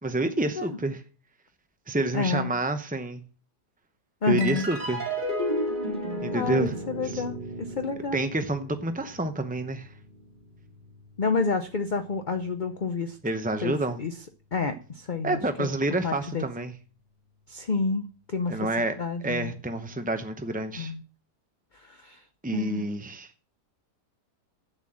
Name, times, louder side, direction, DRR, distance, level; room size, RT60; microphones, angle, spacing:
voice 1, 0.0-1.0 1.9-3.2 4.3-5.2 6.2-6.7 7.0-7.2 8.1-9.9 13.2-14.0 15.2-16.7 18.5-19.0 19.2-20.9 22.4-23.3, right 2 dB, 15° right, 0.3 m, -28 dB
voice 2, 2.1-2.5 4.2-4.7 6.3-8.3 11.2-13.2 13.6-13.7 14.0-14.1 14.5-15.7 16.0-16.4 17.5-18.6 19.0-19.5 20.8-21.0 21.8-22.2 22.5-22.8, left 4 dB, 40° left, 0.7 m, -29 dB
sound 1, 4.4-11.1, right 1 dB, 30° right, 2.1 m, -33 dB
8.2 x 7.6 x 7.5 m
omnidirectional pair, 1.8 m